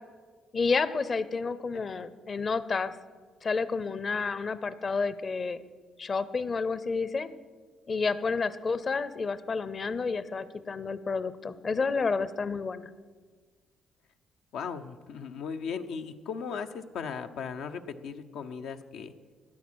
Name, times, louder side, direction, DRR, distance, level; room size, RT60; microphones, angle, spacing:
voice 1, 0.5-2.9 3.4-5.6 6.0-7.3 7.9-12.9, left 4 dB, 40° left, 15 dB, 0.7 m, -30 dB
voice 2, 1.7-2.1 14.5-19.1, left 6 dB, 80° left, 7 dB, 0.8 m, -37 dB
16.0 x 10.0 x 6.3 m, 1.5 s
cardioid pair, 90°, 0 cm